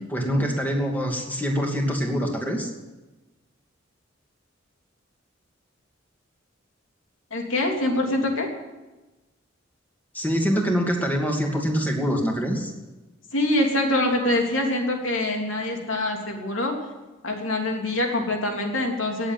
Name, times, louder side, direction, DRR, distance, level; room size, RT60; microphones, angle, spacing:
voice 1, 0.1-2.7 10.1-12.7, equal, 10° left, 1 dB, 2.6 m, -24 dB
voice 2, 7.3-8.5 13.3-16.7 17.2-19.3, left 1 dB, 85° left, 2 dB, 3.2 m, -24 dB
18.5 x 7.8 x 9.4 m, 1.1 s
head